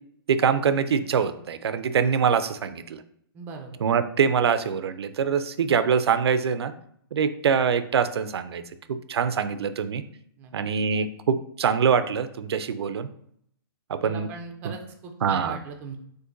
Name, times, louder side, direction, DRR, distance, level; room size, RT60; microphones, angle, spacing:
voice 1, 0.3-3.0 3.8-6.7 7.1-8.6 8.9-10.0 10.5-13.1 13.9-14.3 14.6-14.7 15.2-15.6, right 6 dB, 90° right, 11 dB, 0.4 m, -24 dB
voice 2, 3.3-3.8 10.4-10.5 14.0-16.0, right 4 dB, 15° right, 4 dB, 0.4 m, -39 dB
6.4 x 2.6 x 2.5 m, 0.69 s
hypercardioid pair, 160°, 13 cm